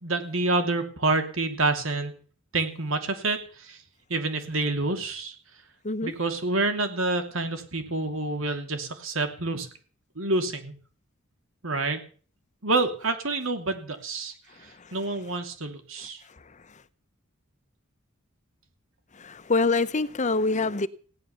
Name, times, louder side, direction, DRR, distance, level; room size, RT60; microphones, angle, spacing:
voice 1, 0.0-2.2 2.5-3.8 4.1-5.3 6.0-9.7 10.2-10.7 11.6-12.0 12.6-14.3 14.6-16.2, right 2 dB, 70° right, 2.8 m, -28 dB
voice 2, 14.5-14.9 16.3-16.8 19.1-20.9, left 3 dB, 35° left, 0.8 m, -27 dB
16.5 x 11.0 x 7.0 m
head